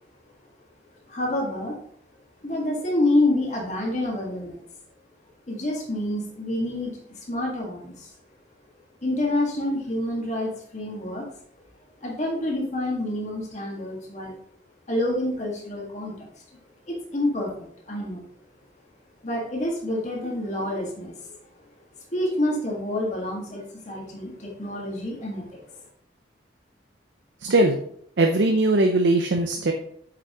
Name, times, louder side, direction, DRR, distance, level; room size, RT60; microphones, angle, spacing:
voice 1, 1.1-1.8 2.4-4.6 5.5-8.1 9.0-11.3 12.0-14.3 14.9-16.4 16.9-18.2 19.2-21.4 22.1-25.8, left 1 dB, 40° left, -2 dB, 1.8 m, -28 dB
voice 2, 27.4-27.8 28.2-29.7, right 2 dB, 75° right, 4 dB, 0.6 m, -20 dB
7.9 x 6.0 x 3.0 m, 0.65 s
head